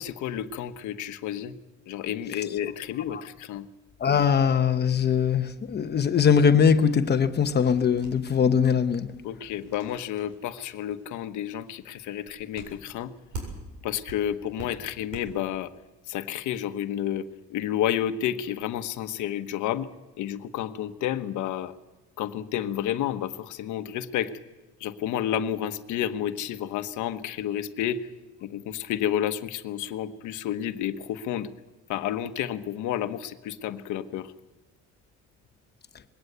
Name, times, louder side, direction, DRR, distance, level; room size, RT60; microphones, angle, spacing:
voice 1, 0.0-1.6 1.9-3.7 9.2-13.1 13.8-15.7 16.1-19.9 20.2-21.7 22.2-24.4 24.8-28.1 28.4-31.5 31.9-34.3, left 10 dB, 80° left, 1.2 m, -30 dB
voice 2, 4.0-9.1, left 7 dB, 35° left, 1.0 m, -21 dB
sound 1, 7.4-13.8 14.1-15.2, right 3 dB, 80° right, 7.6 m, -44 dB
21.5 x 18.0 x 8.1 m
cardioid pair, 140°, 30 cm